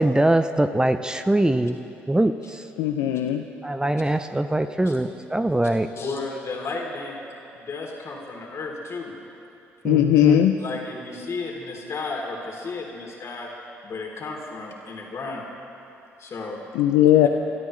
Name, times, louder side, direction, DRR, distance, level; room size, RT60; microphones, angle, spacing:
voice 1, 0.0-1.8 2.1-2.6 3.6-5.9 9.8-10.4, right 1 dB, 10° right, 9 dB, 0.7 m, -22 dB
voice 2, 2.8-3.4 9.8-10.6 16.7-17.3, left 12 dB, 80° left, 5 dB, 0.5 m, -18 dB
voice 3, 5.9-7.2 7.5-9.1 10.6-13.5 13.8-15.4 16.2-16.6, left 3 dB, 50° left, -1 dB, 3.3 m, -33 dB
27.5 x 13.0 x 3.3 m, 2.7 s
hypercardioid pair, 55°, 6 cm